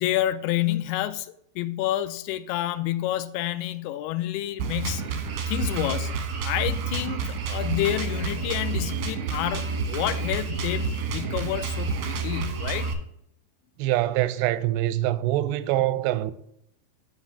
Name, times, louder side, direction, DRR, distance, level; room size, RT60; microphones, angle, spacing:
voice 1, 0.0-5.0 5.5-6.1 6.4-12.9, left 14 dB, 85° left, 2.4 m, -29 dB
Drum kit, 4.6-12.9, right 4 dB, 75° right, 1.7 m, -29 dB
voice 2, 13.8-16.3, right 14 dB, 90° right, 2.7 m, -24 dB
9.7 x 4.2 x 5.7 m
omnidirectional pair, 4.8 m